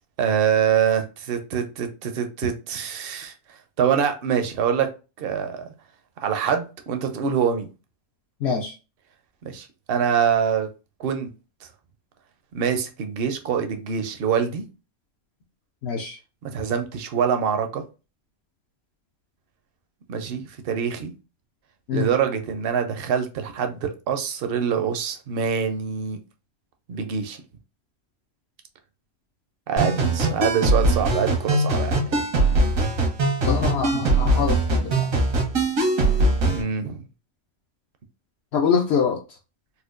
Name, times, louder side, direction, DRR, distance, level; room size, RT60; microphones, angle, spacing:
voice 1, 0.2-4.9 5.2-5.7 6.2-7.7 9.4-10.7 11.0-11.3 11.6-11.7 12.5-14.6 16.4-17.8 20.1-21.1 21.9-26.2 26.9-27.4 29.7-32.3 36.5-37.0, right 7 dB, 60° right, 0.7 m, -25 dB
voice 2, 8.4-8.7 15.8-16.2 21.9-22.1 33.4-35.1 38.5-39.2, left 6 dB, 65° left, 0.7 m, -24 dB
sound 1, 29.8-36.6, right 2 dB, 85° right, 1.6 m, -21 dB
4.3 x 2.3 x 2.4 m
omnidirectional pair, 1.4 m